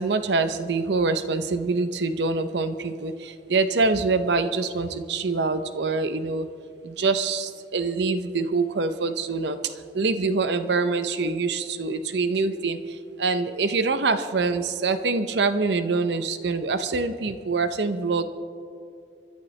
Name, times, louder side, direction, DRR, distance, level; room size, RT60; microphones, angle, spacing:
voice 1, 0.0-6.5 6.8-18.2, right 4 dB, 65° right, 10 dB, 0.6 m, -25 dB
28.0 x 11.5 x 3.2 m, 2.4 s
head